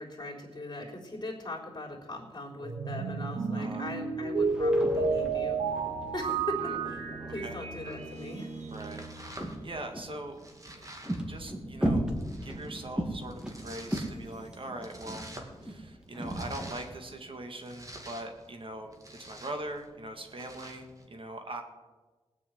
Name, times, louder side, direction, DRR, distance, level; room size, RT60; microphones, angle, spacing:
voice 1, 0.0-5.7 6.1-8.5, left 1 dB, 40° left, 0 dB, 3.6 m, -40 dB
sound 1, 2.6-9.9, right 3 dB, 90° right, 2.1 m, -32 dB
voice 2, 3.5-3.9 6.6-6.7 7.3-7.6 8.7-9.1 9.6-10.9 11.3-12.1 12.4-15.3 15.6-21.6, right 1 dB, 50° right, 4 dB, 1.9 m, -41 dB
sound 2, 4.3-7.8 8.3-10.2 10.7-16.7, right 1 dB, 10° right, 2.3 m, -37 dB
Domestic sounds home sounds, 7.8-21.1, right 1 dB, 30° right, 2.4 m, -50 dB
18.0 x 6.2 x 9.3 m, 1.3 s
wide cardioid pair, 85°, 11 cm